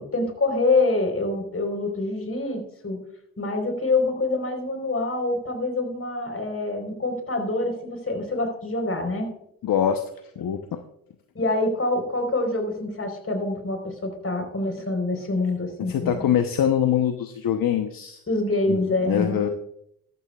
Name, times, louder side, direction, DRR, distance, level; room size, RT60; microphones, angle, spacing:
voice 1, 0.0-3.0 3.4-9.3 11.3-16.3 18.3-19.5, left 2 dB, 40° left, 4 dB, 4.2 m, -26 dB
voice 2, 9.6-10.0 10.4-10.6 15.8-18.2 18.7-18.8 19.0-19.5, left 9 dB, 65° left, 7 dB, 1.0 m, -23 dB
14.5 x 12.5 x 2.4 m, 0.74 s
supercardioid pair, 50°, 37 cm